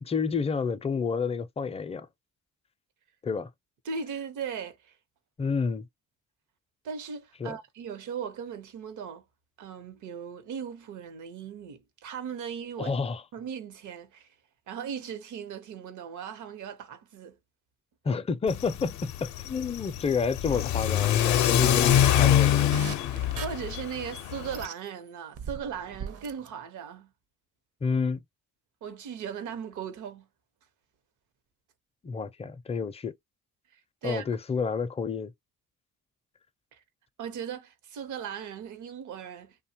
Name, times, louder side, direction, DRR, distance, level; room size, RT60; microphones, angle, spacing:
voice 1, 0.0-2.1 3.2-3.5 5.4-5.9 7.4-7.6 12.8-13.2 18.0-22.7 27.8-28.2 32.0-33.1 34.0-35.3, left 5 dB, 20° left, 0.4 m, -29 dB
voice 2, 3.8-4.9 6.8-9.2 9.6-12.9 13.3-14.3 14.7-17.4 23.0-27.1 28.8-30.3 33.7-34.2 36.7-36.8 37.2-39.6, right 7 dB, 75° right, 0.8 m, -38 dB
Car / Accelerating revving vroom, 18.5-24.7, left 11 dB, 70° left, 0.5 m, -25 dB
sound 1, 22.0-24.7 25.4-26.5, right 7 dB, 50° right, 0.6 m, -40 dB
2.8 x 2.2 x 2.7 m
cardioid pair, 90°, 30 cm